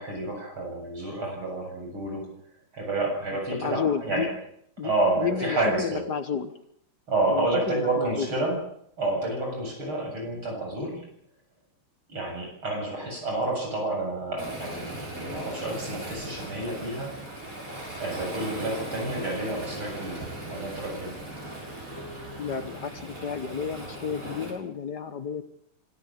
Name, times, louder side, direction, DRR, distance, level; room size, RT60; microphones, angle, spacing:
voice 1, 0.0-2.3 2.7-4.3 4.8-6.0 7.1-8.6 9.0-11.1 12.1-17.2 18.0-21.2, right 2 dB, 70° right, 1 dB, 8.9 m, -29 dB
voice 2, 3.3-4.3 4.8-4.9 5.2-6.5 7.3-8.3 22.4-25.4, left 7 dB, 55° left, 11 dB, 1.6 m, -31 dB
Waves surf, 14.4-24.5, right 1 dB, 35° right, 7.2 m, -38 dB
26.0 x 14.5 x 8.6 m, 0.71 s
omnidirectional pair, 2.4 m